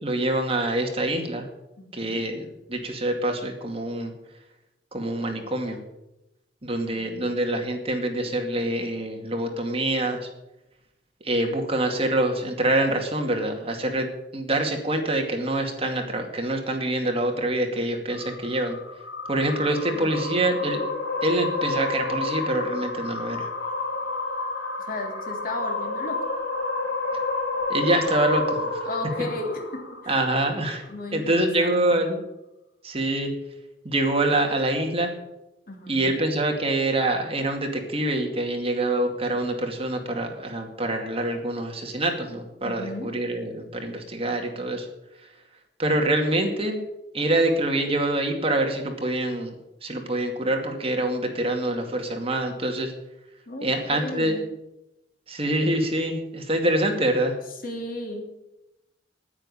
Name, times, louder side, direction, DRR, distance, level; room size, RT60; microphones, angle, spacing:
voice 1, 0.0-1.5 1.9-4.1 4.9-5.8 6.6-10.3 11.2-18.8 19.3-20.8 21.2-23.5 27.7-28.8 30.1-30.8 31.1-32.2 32.8-33.3 33.8-35.1 35.9-44.9 45.8-46.8 47.1-49.5 49.8-52.9 53.6-54.4 55.3-57.3, right 1 dB, 30° right, 3 dB, 2.3 m, -25 dB
voice 2, 1.8-2.2 7.0-7.2 19.8-20.4 24.8-26.2 28.8-30.1 30.9-32.0 35.7-36.2 42.6-43.1 53.5-54.4 57.6-58.3, left 2 dB, 50° left, 2 dB, 3.2 m, -35 dB
sound 1, 18.1-30.6, left 3 dB, 90° left, 4.7 m, -30 dB
9.6 x 9.4 x 10.0 m, 0.93 s
head